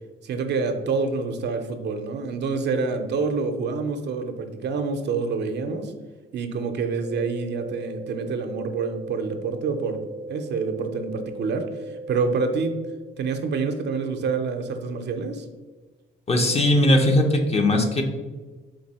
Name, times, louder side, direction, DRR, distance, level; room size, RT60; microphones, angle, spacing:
voice 1, 0.2-5.9 6.3-10.0 10.3-12.8 13.2-15.4, right 4 dB, 60° right, 6 dB, 0.6 m, -27 dB
sound 1, 7.0-13.0, right 2 dB, 20° right, 0.6 m, -38 dB
voice 2, 16.3-18.0, left 1 dB, 30° left, 4 dB, 0.7 m, -19 dB
4.5 x 2.6 x 4.1 m, 1.3 s
cardioid pair, 90°, 20 cm